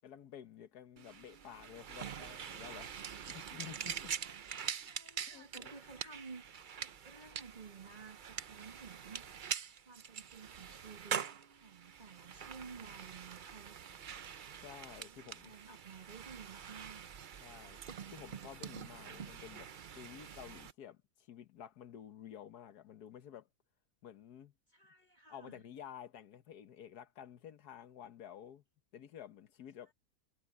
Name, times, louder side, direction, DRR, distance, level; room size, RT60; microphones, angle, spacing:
voice 1, 0.0-4.1 5.3-5.7 14.6-15.5 17.4-17.8 18.1-23.5 24.0-24.5 25.3-28.6 28.9-29.9, left 9 dB, 80° left, 1.6 m, -52 dB
sound 1, 1.0-20.7, right 8 dB, 55° right, 0.5 m, -45 dB
voice 2, 4.8-9.2 9.9-11.2 11.5-13.8 15.0-17.3 24.7-25.6, right 4 dB, 30° right, 1.9 m, -54 dB
omnidirectional pair, 1.6 m